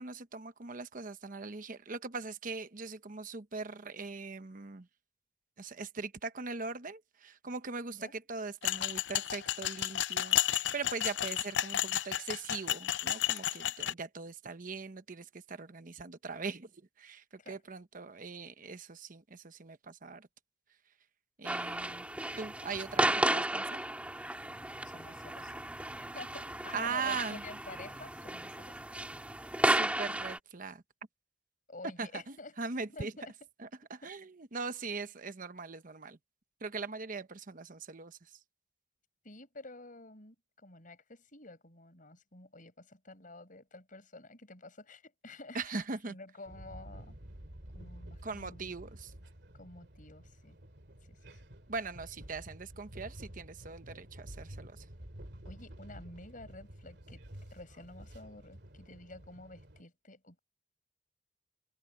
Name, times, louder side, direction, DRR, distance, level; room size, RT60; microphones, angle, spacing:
voice 1, 0.0-4.9 5.6-16.7 17.0-20.3 21.4-22.0 22.4-23.8 26.7-27.4 29.6-30.8 32.0-33.1 33.6-36.2 36.6-38.2 45.5-46.1 48.2-49.1 51.7-54.8, right 4 dB, 50° right, 1.0 m, -41 dB
sound 1, 8.6-13.9, left 11 dB, 80° left, 0.6 m, -32 dB
sound 2, 21.4-30.4, right 1 dB, 10° right, 2.0 m, -34 dB
voice 2, 24.8-25.5 26.1-28.8 31.7-32.6 32.9-33.3 34.0-34.1 39.2-40.4 40.6-47.2 47.7-48.7 49.5-50.6 51.1-51.4 55.4-57.2 57.5-60.4, left 2 dB, 50° left, 7.6 m, -50 dB
sound 3, 46.5-59.8, right 1 dB, 65° right, 2.6 m, -50 dB
open air
head